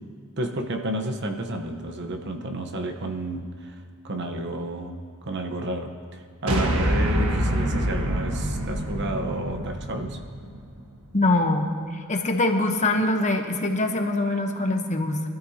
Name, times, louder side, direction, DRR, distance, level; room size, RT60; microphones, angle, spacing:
voice 1, 0.4-10.2, right 1 dB, 55° right, 4 dB, 1.1 m, -31 dB
sound 1, 6.5-10.9, equal, 80° right, 1.5 m, -26 dB
voice 2, 11.1-11.7 11.9-15.2, left 2 dB, 35° left, 4 dB, 1.0 m, -23 dB
22.5 x 13.0 x 2.9 m, 2.2 s
head